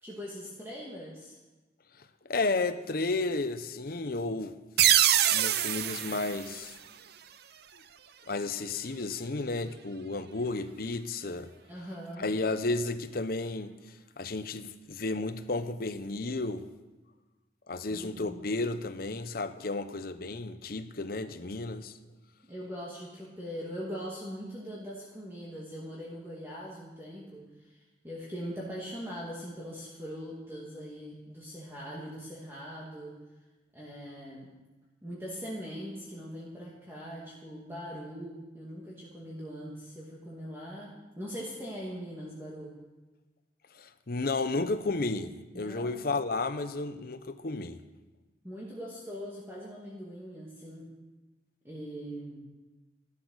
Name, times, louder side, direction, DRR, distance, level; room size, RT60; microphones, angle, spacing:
voice 1, 0.0-1.4 11.7-12.3 17.8-18.4 22.5-33.2 33.7-34.5 35.0-42.8 45.5-46.0 48.4-50.9 51.6-52.4, equal, 15° right, 2.2 m, -41 dB
voice 2, 2.2-4.6 5.2-6.7 8.3-11.5 12.2-13.8 14.2-16.7 17.7-21.9 43.8-47.8, left 3 dB, 55° left, 0.8 m, -32 dB
sound 1, 4.8-7.3, right 11 dB, 60° right, 0.6 m, -25 dB
14.0 x 12.0 x 6.4 m
head